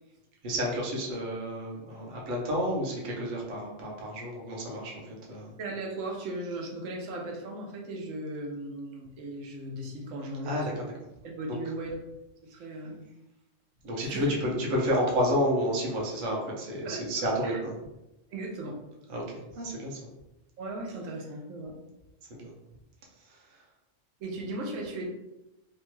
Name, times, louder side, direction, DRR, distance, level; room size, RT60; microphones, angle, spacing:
voice 1, 0.4-5.5 10.4-10.9 11.5-11.6 13.8-17.7 19.1-20.0 22.3-22.5, equal, 45° right, -3 dB, 0.8 m, -30 dB
voice 2, 5.6-10.9 11.2-12.0 12.4-13.0 14.1-14.3 16.8-17.6 18.3-18.8 20.6-21.8 24.2-25.1, right 1 dB, 85° right, 0 dB, 1.0 m, -37 dB
2.9 x 2.2 x 3.0 m, 0.94 s
omnidirectional pair, 1.3 m